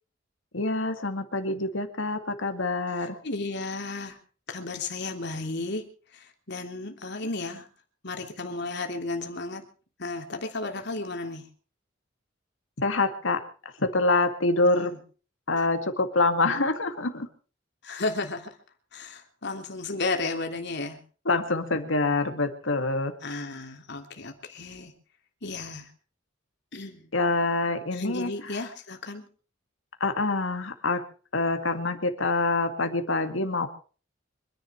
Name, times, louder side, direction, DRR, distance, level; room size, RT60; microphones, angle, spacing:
voice 1, 0.5-3.2 12.8-13.4 13.8-14.9 15.5-17.3 21.3-23.1 27.1-28.3 30.0-31.0 31.3-33.7, left 2 dB, 80° left, 7 dB, 2.3 m, -26 dB
voice 2, 2.9-4.2 4.5-7.7 8.0-9.6 10.0-11.5 14.7-15.0 17.8-18.6 18.9-21.0 23.2-24.9 25.4-25.9 26.7-27.1 27.9-29.2, left 3 dB, 60° left, 4 dB, 3.3 m, -34 dB
26.0 x 10.5 x 4.7 m, 0.39 s
head